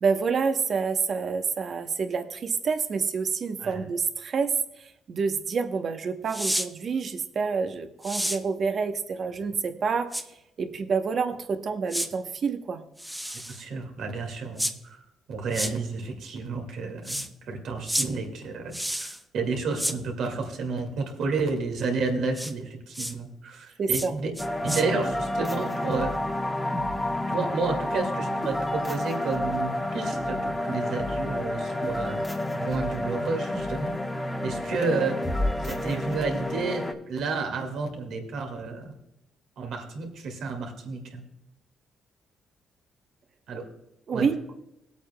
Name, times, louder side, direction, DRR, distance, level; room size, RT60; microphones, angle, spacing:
voice 1, 0.0-4.5 4.8-10.2 10.6-12.8 23.8-24.1 44.1-44.5, right 5 dB, 50° right, 7 dB, 0.9 m, -28 dB
sound 1, 6.3-6.7 8.0-8.4 10.1-10.2 11.9-12.1 13.0-13.6 14.6-14.7 15.5-15.7 17.0-17.3 17.9-18.1 18.7-19.2 19.8-20.0 22.3-22.5 22.9-23.1 23.9-24.1 24.4-24.8, equal, 5° right, 0.8 m, -30 dB
voice 2, 13.5-15.0 15.3-24.3 24.6-26.1 27.3-35.2 35.6-38.9 39.6-41.2 43.5-43.7 44.1-44.3, right 4 dB, 75° right, 3 dB, 2.0 m, -31 dB
sound 2, 24.4-36.9, left 1 dB, 15° left, 1.1 m, -30 dB
19.5 x 8.3 x 2.2 m, 0.88 s
cardioid pair, 90°, 0 cm